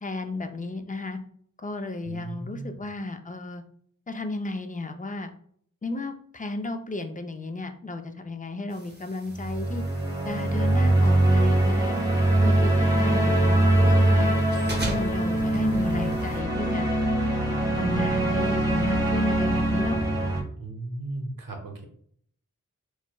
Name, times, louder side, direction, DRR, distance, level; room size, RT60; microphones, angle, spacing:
voice 1, 0.0-1.2 1.6-3.6 4.1-5.3 5.8-9.8 10.2-12.0 12.4-14.4 14.9-17.0 17.5-20.0, left 2 dB, 25° left, 7 dB, 0.4 m, -34 dB
voice 2, 2.0-2.8 20.6-21.8, right 2 dB, 85° right, 2 dB, 0.8 m, -36 dB
sound 1, 8.7-16.4, right 1 dB, 30° right, 0.7 m, -41 dB
sound 2, 9.3-20.4, right 1 dB, 10° right, 1.0 m, -22 dB
4.5 x 2.1 x 2.2 m, 0.63 s
wide cardioid pair, 50°, 33 cm